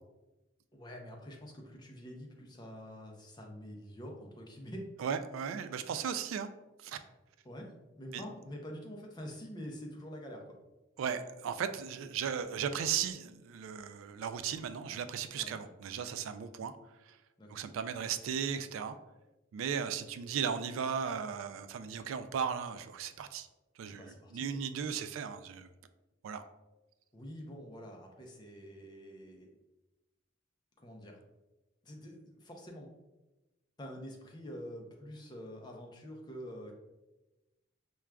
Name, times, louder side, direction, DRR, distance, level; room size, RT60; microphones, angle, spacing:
voice 1, 0.7-4.9 7.4-10.4 15.4-15.6 17.4-17.6 23.9-24.6 27.1-29.5 30.8-31.2 31.8-32.9 33.8-36.8, equal, 20° left, 1 dB, 0.5 m, -46 dB
voice 2, 5.0-6.5 6.8-7.0 8.1-8.2 11.0-16.7 17.1-17.2 17.5-19.0 19.5-23.5 23.8-24.1 24.3-25.7 26.2-26.5, right 7 dB, 85° right, 11 dB, 0.3 m, -36 dB
6.0 x 2.3 x 2.2 m, 1.0 s
head